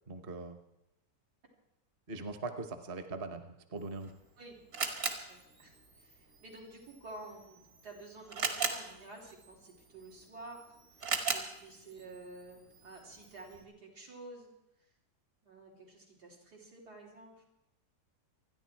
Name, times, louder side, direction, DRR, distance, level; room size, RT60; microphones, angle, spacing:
voice 1, 0.1-0.6 2.1-4.1, right 3 dB, 40° right, 8 dB, 1.2 m, -41 dB
Camera, 3.8-13.6, right 4 dB, 55° right, 2.3 m, -40 dB
voice 2, 5.1-10.8 11.3-14.5 15.4-17.4, right 2 dB, 80° right, -3 dB, 4.3 m, -51 dB
27.0 x 10.5 x 4.6 m, 0.89 s
omnidirectional pair, 1.7 m